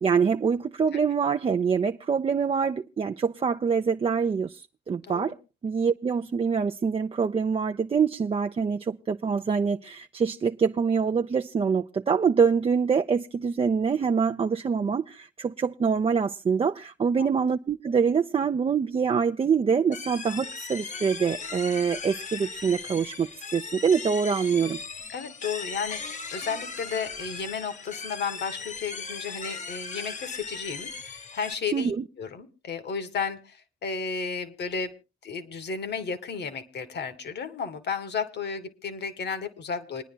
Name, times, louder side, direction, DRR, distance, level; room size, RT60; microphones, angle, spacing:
voice 1, 0.0-5.4 5.6-24.8 31.7-32.0, right 6 dB, 30° right, 0.5 m, -25 dB
sound 1, 19.9-31.5, left 5 dB, 40° left, 1.0 m, -38 dB
voice 2, 25.1-31.9 32.2-34.9 35.2-40.0, left 5 dB, 60° left, 1.8 m, -33 dB
28.0 x 10.0 x 2.2 m
cardioid pair, 90°, 20 cm